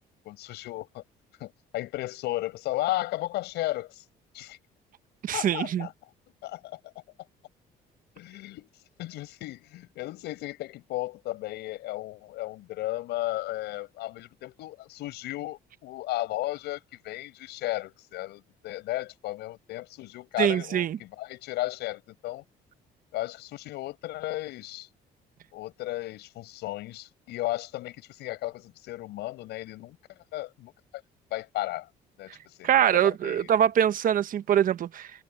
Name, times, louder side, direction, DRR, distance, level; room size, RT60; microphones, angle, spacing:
voice 1, 0.3-1.0 1.4-4.0 4.3-4.6 5.3-5.9 6.4-6.8 8.2-8.7 9.0-22.4 23.1-24.9 25.5-30.0 30.3-31.0 31.3-31.9 32.2-33.5, left 17 dB, 80° left, 7.2 m, -34 dB
voice 2, 5.2-5.9 20.4-21.0 32.6-35.1, right 10 dB, 55° right, 1.1 m, -23 dB
cardioid pair, 110°, 17 cm